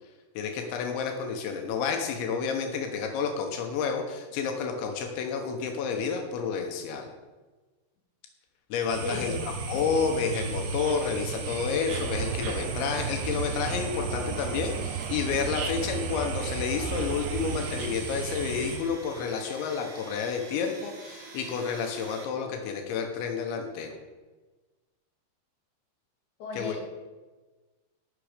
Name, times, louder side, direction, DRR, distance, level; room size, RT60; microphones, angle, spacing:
voice 1, 0.4-7.1 8.7-9.3 9.7-23.9 26.6-26.8, left 6 dB, 85° left, 4 dB, 3.3 m, -30 dB
sound 1, 8.9-18.8, right 3 dB, 75° right, 3.7 m, -35 dB
voice 2, 9.0-9.4 26.4-26.8, left 3 dB, 50° left, -1 dB, 3.3 m, -34 dB
sound 2, 11.9-17.8, right 9 dB, 90° right, 2.1 m, -36 dB
Domestic sounds home sounds, 16.7-22.2, right 3 dB, 50° right, 2.6 m, -47 dB
18.0 x 6.1 x 5.0 m, 1.3 s
omnidirectional pair, 5.2 m